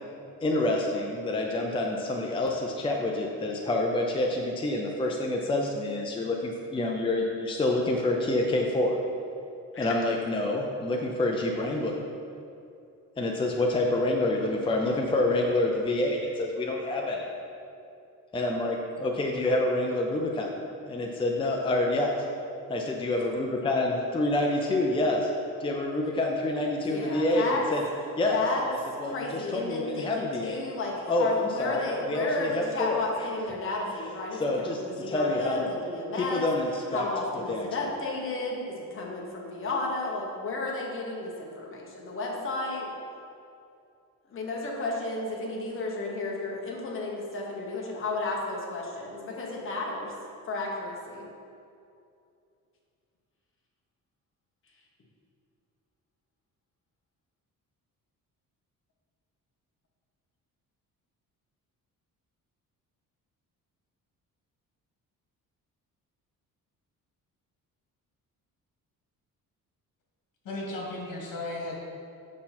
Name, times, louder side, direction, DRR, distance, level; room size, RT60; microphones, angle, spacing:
voice 1, 0.4-8.9 9.8-12.0 13.2-17.3 18.3-20.5 20.8-22.1 22.7-25.3 25.6-27.8 28.2-30.6 31.1-33.0 34.3-35.7 36.2-37.0 37.3-37.7, left 2 dB, 15° left, 0 dB, 0.6 m, -27 dB
voice 2, 26.8-27.7 28.3-28.6 29.0-36.5 36.9-42.9 44.3-50.1 50.5-51.3, left 2 dB, 40° left, -2 dB, 1.3 m, -33 dB
voice 3, 70.4-71.8, left 2 dB, 75° left, -2 dB, 2.0 m, -35 dB
8.4 x 5.6 x 4.3 m, 2.5 s
cardioid pair, 140°, 34 cm